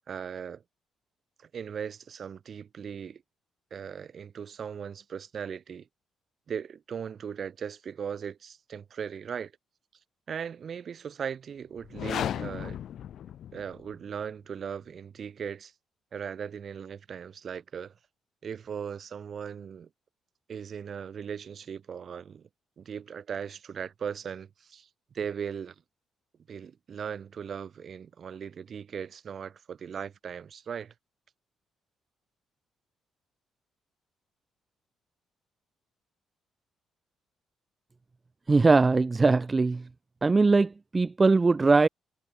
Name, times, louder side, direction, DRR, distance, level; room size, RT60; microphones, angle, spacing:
voice 1, 0.1-0.6 1.4-3.2 3.7-5.9 6.5-9.5 10.3-12.8 13.5-15.7 16.1-17.9 18.4-19.9 20.5-22.5 22.8-24.9 25.1-25.7 26.5-30.9, right 7 dB, 50° right, 3.4 m, -38 dB
sound 1, 11.8-13.9, left 10 dB, 70° left, 2.6 m, -35 dB
voice 2, 38.5-39.8 40.2-41.9, right 3 dB, 25° right, 0.8 m, -21 dB
cardioid pair, 90°, 0 cm